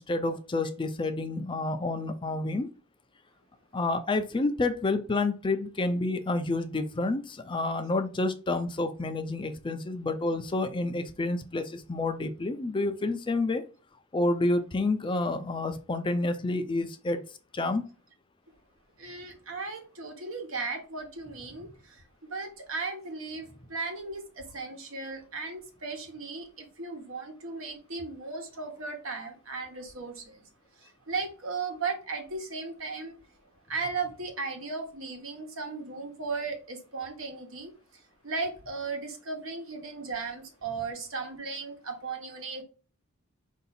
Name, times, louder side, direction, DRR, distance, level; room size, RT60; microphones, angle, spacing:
voice 1, 0.0-2.7 3.7-13.6 14.1-17.2 17.5-17.8, left 2 dB, 25° left, 0.4 m, -29 dB
voice 2, 19.0-21.7 22.3-30.4 31.1-33.2 33.7-37.7 38.2-42.6, right 4 dB, 70° right, 1.2 m, -36 dB
4.7 x 2.7 x 4.1 m
head